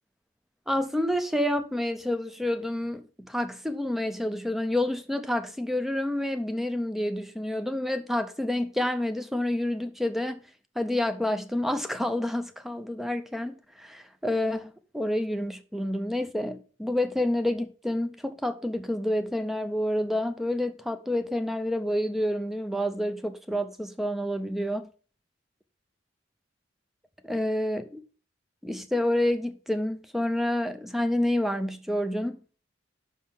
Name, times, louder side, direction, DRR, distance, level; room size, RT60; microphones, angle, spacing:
voice 1, 0.7-10.4 10.8-24.9 27.2-28.0 28.6-32.4, left 1 dB, ahead, 0.5 m, -28 dB
5.6 x 5.4 x 5.6 m
head